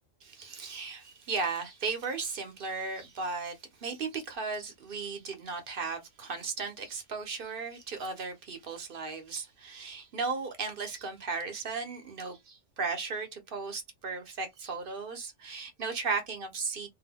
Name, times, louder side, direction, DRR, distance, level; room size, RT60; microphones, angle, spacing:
voice 1, 0.2-16.9, right 4 dB, 50° right, 1.0 m, -36 dB
3.7 x 2.6 x 2.2 m
omnidirectional pair, 1.3 m